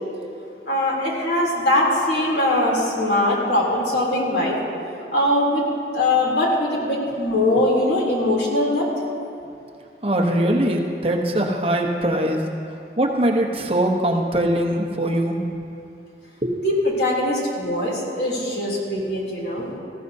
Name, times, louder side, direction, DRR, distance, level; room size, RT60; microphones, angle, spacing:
voice 1, 0.7-4.6 5.1-5.6 5.9-8.9 16.6-19.7, left 1 dB, 75° left, -4 dB, 3.2 m, -21 dB
voice 2, 10.0-12.4 13.0-15.4 16.4-16.5, right 1 dB, 30° right, 1 dB, 1.0 m, -21 dB
19.0 x 14.5 x 2.8 m, 2.5 s
head